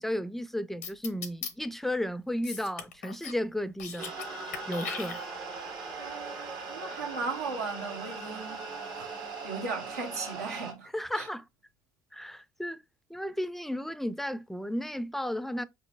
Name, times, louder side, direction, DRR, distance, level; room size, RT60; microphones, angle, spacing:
voice 1, 0.0-4.1 4.7-5.2 10.9-11.4 12.1-12.8 13.1-15.6, left 1 dB, 5° left, 0.4 m, -33 dB
sound 1, 0.8-1.5 2.4-3.4 3.7-4.3 4.5-5.6, left 6 dB, 85° left, 0.6 m, -39 dB
sound 2, 4.0-10.7, right 4 dB, 60° right, 1.2 m, -39 dB
voice 2, 6.0-10.9 11.1-11.3, right 4 dB, 85° right, 1.0 m, -37 dB
4.9 x 2.7 x 2.4 m
hypercardioid pair, 55°, 9 cm